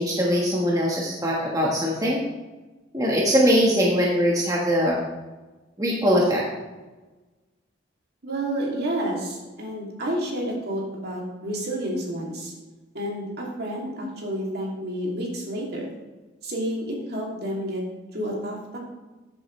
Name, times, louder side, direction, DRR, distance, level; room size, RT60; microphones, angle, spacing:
voice 1, 0.0-2.2 2.9-5.0 5.8-6.4, equal, 20° right, -3 dB, 1.4 m, -21 dB
voice 2, 8.2-12.5 12.9-15.9 16.4-17.8 18.1-18.8, right 1 dB, 55° right, -2 dB, 2.8 m, -30 dB
13.5 x 7.6 x 3.3 m, 1.2 s
head